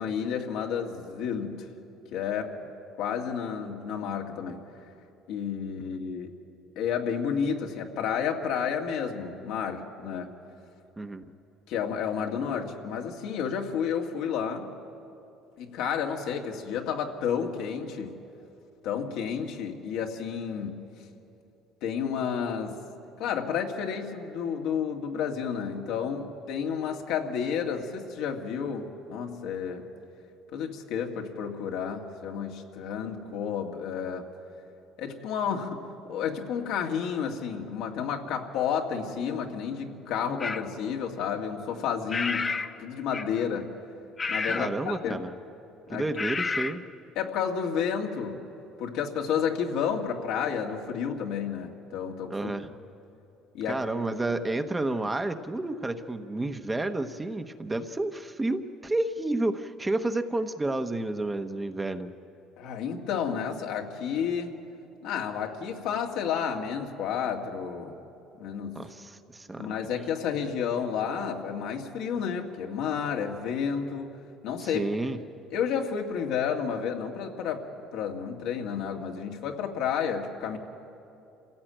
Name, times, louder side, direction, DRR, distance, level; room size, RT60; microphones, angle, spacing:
voice 1, 0.0-1.7 2.1-2.6 3.0-4.6 5.3-6.3 6.8-10.3 11.7-14.7 15.6-18.2 18.8-20.8 21.8-22.8 23.2-29.9 30.5-34.3 35.0-43.7 44.3-45.2 45.9-46.1 47.2-48.5 48.8-52.5 53.5-53.8 54.3-54.4 62.6-64.5 65.0-68.0 68.4-68.8 69.6-74.1 74.4-74.9 75.5-77.7 77.9-80.6, left 7 dB, 75° left, 2 dB, 2.2 m, -31 dB
sound 1, 40.4-40.7 42.1-42.7 43.1-43.4 44.2-44.8 46.2-46.7, left 4 dB, 25° left, 0.8 m, -30 dB
voice 2, 44.5-45.3 45.9-46.8 52.3-52.7 53.7-62.1 68.7-69.7 74.6-75.2, right 2 dB, 15° right, 7 dB, 0.9 m, -30 dB
27.0 x 16.0 x 9.0 m, 2.8 s
cardioid pair, 125°, 0 cm